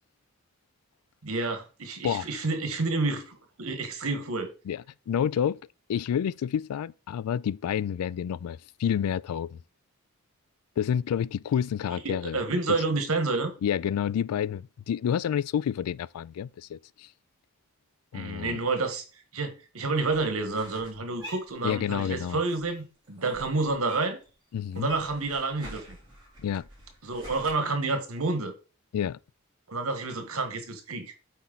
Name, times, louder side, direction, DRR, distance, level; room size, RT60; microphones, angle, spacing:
voice 1, 1.2-4.5 12.3-13.5 18.1-19.0 19.3-24.2 24.7-26.0 27.0-28.5 29.7-31.1, right 3 dB, 75° right, 1.5 m, -29 dB
voice 2, 4.7-5.6 5.9-9.6 10.8-12.4 13.6-17.1 18.1-18.6 21.6-22.4 24.5-24.9 26.4-26.7 28.9-29.2, left 8 dB, 90° left, 0.3 m, -29 dB
sound 1, 20.1-22.1 22.4-24.3 24.5-27.5, right 1 dB, 20° right, 3.4 m, -47 dB
8.2 x 4.4 x 4.0 m
head